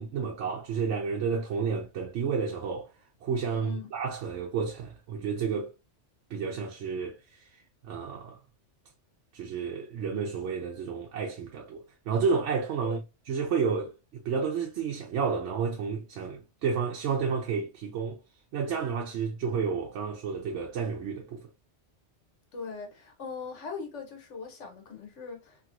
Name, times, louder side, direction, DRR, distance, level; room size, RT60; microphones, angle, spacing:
voice 1, 0.0-5.7 6.3-8.4 9.3-13.0 13.3-18.2 18.5-21.5, right 5 dB, 80° right, 0.9 m, -31 dB
voice 2, 3.5-3.8 12.8-13.0 22.5-25.6, left 5 dB, 85° left, 1.2 m, -40 dB
2.9 x 2.8 x 2.5 m
omnidirectional pair, 1.2 m